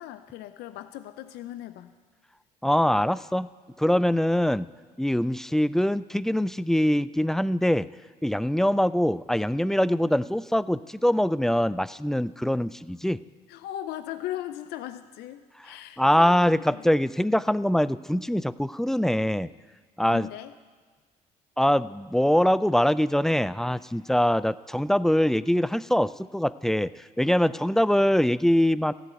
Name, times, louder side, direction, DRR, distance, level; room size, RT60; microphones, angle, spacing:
voice 1, 0.0-1.9 13.5-16.8 20.0-20.5, left 13 dB, 70° left, 11 dB, 0.5 m, -38 dB
voice 2, 2.6-3.5 3.8-4.7 5.0-7.9 8.2-13.2 16.0-19.5 20.0-20.3 21.6-26.9 27.2-28.9, equal, ahead, 18 dB, 0.3 m, -23 dB
13.5 x 7.9 x 9.2 m, 1.5 s
supercardioid pair, 70°, 17 cm